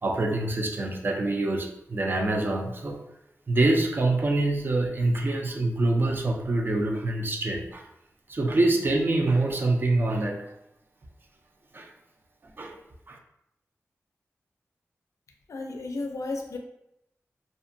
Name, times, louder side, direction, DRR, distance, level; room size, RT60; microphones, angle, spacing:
voice 1, 0.0-3.0 3.5-7.9 8.3-10.5 11.7-11.9 12.6-12.8 13.1-13.2, right 2 dB, 40° right, 2 dB, 0.4 m, -25 dB
voice 2, 15.5-16.6, left 3 dB, 90° left, 2 dB, 0.4 m, -33 dB
2.5 x 2.1 x 2.6 m, 0.80 s
wide cardioid pair, 85°, 5 cm